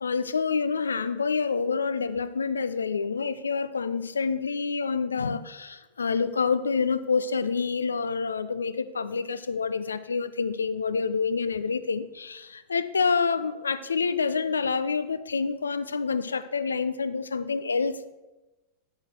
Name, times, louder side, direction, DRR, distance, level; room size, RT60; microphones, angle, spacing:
voice 1, 0.0-18.1, left 5 dB, 75° left, 14 dB, 0.4 m, -27 dB
10.5 x 6.4 x 4.5 m, 1.1 s
figure-of-eight pair, 90°, 0 cm